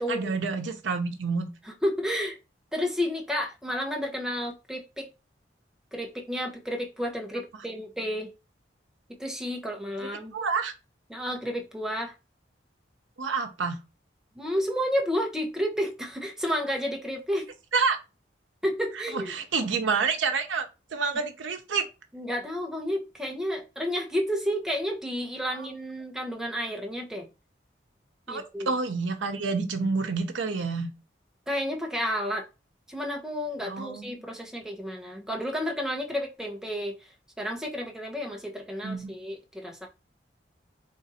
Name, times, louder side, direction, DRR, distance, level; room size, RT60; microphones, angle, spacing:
voice 1, 0.1-1.5 10.3-10.7 13.2-13.8 17.7-18.0 19.1-21.9 25.5-25.7 28.3-30.9 33.6-34.0 38.8-39.1, right 4 dB, 90° right, 0.6 m, -28 dB
voice 2, 1.8-2.4 2.7-5.1 5.9-8.3 9.2-10.3 11.1-12.1 14.4-17.5 18.6-19.3 21.1-21.2 22.1-27.3 28.3-28.7 31.5-32.5 32.9-39.9, equal, 5° right, 0.7 m, -31 dB
3.6 x 2.5 x 4.1 m
head